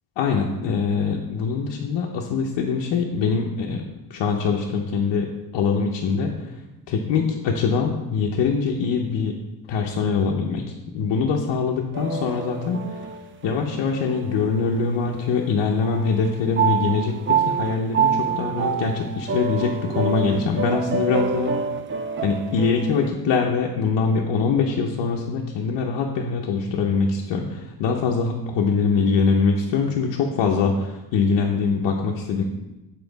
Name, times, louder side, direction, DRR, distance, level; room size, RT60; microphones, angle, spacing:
voice 1, 0.2-6.3 6.9-9.3 9.7-10.6 10.9-12.8 13.4-21.5 22.2-32.4, left 5 dB, 85° left, -1 dB, 0.7 m, -23 dB
sound 1, 11.9-15.5 15.8-23.1, right 6 dB, 30° right, 0.4 m, -27 dB
7.1 x 4.5 x 3.9 m, 1.0 s
cardioid pair, 90°, 42 cm